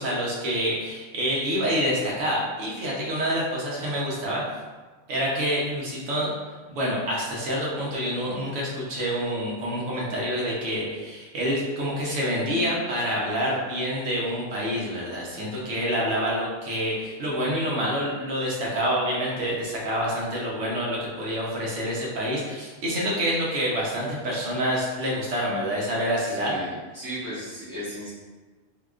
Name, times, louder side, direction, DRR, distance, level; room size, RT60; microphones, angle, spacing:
voice 1, 0.0-4.4 5.1-6.3 6.7-26.5, equal, 75° right, -4 dB, 1.1 m, -27 dB
voice 2, 26.3-28.1, equal, 15° right, -10 dB, 1.2 m, -36 dB
3.6 x 2.8 x 2.3 m, 1.3 s
omnidirectional pair, 1.3 m